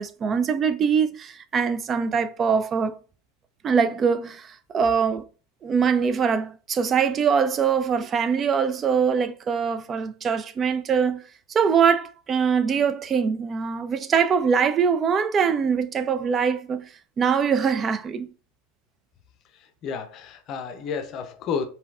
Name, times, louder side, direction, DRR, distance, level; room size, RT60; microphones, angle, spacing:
voice 1, 0.0-2.9 3.6-5.2 5.6-11.2 11.5-16.9 17.2-18.3, right 6 dB, 30° right, 0.4 m, -23 dB
voice 2, 19.5-21.7, left 6 dB, 45° left, 0.6 m, -31 dB
5.0 x 2.7 x 2.4 m
hypercardioid pair, 90°, 0 cm